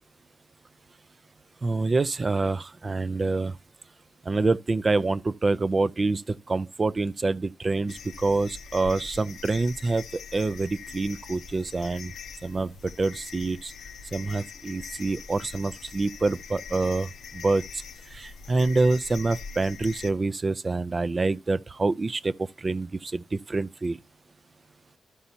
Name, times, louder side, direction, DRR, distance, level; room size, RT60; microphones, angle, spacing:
voice 1, 1.6-3.5 4.3-12.1 12.4-13.7 14.1-17.6 18.1-24.0, right 3 dB, 30° right, 0.4 m, -26 dB
sound 1, 7.9-20.1, left 6 dB, 80° left, 0.6 m, -43 dB
13.0 x 5.4 x 2.7 m
cardioid pair, 100°, 0 cm